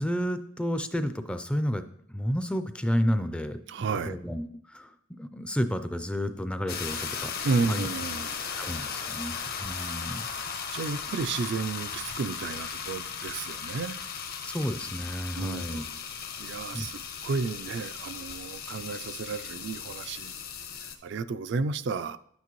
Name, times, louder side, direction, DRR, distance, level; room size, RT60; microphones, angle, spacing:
voice 1, 0.0-7.3 7.7-7.9 8.6-9.4 9.6-10.3 14.4-15.8 16.7-16.9, equal, 5° left, 9 dB, 0.4 m, -31 dB
voice 2, 3.7-4.2 7.4-8.4 9.7-9.9 10.2-10.3 10.7-14.0 15.4-15.8 16.4-20.3 20.8-22.2, right 4 dB, 60° right, 12 dB, 0.4 m, -32 dB
sound 1, 6.7-20.9, left 6 dB, 50° left, 0.9 m, -37 dB
10.5 x 8.3 x 3.1 m, 0.67 s
head